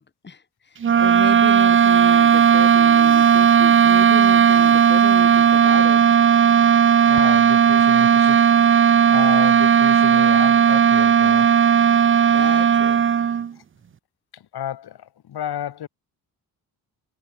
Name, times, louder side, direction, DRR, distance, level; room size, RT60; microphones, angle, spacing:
voice 1, 0.0-6.0 12.3-13.0, left 5 dB, 25° left, 3.8 m, -34 dB
sound 1, 0.8-13.5, right 7 dB, 30° right, 0.7 m, -15 dB
voice 2, 7.1-11.6 13.5-13.6 14.3-15.9, left 11 dB, 75° left, 6.6 m, -32 dB
wide cardioid pair, 160°, 39 cm